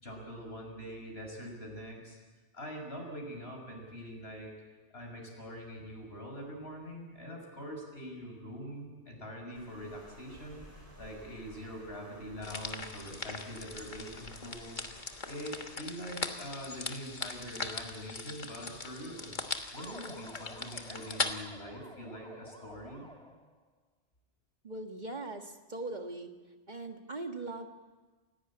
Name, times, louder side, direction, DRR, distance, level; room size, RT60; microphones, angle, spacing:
voice 1, 0.0-2.2 2.5-4.5 4.9-19.3 19.7-23.1, equal, 65° left, 1 dB, 6.6 m, -44 dB
Water, 9.5-15.7, equal, 15° right, 5.1 m, -55 dB
sound 1, 12.4-21.3, left 3 dB, 45° left, 1.6 m, -40 dB
sound 2, 19.7-23.6, equal, 5° left, 1.3 m, -51 dB
voice 2, 24.6-26.3 26.7-27.7, right 2 dB, 40° right, 4 dB, 1.8 m, -40 dB
29.0 x 16.5 x 8.8 m, 1.3 s
omnidirectional pair, 1.1 m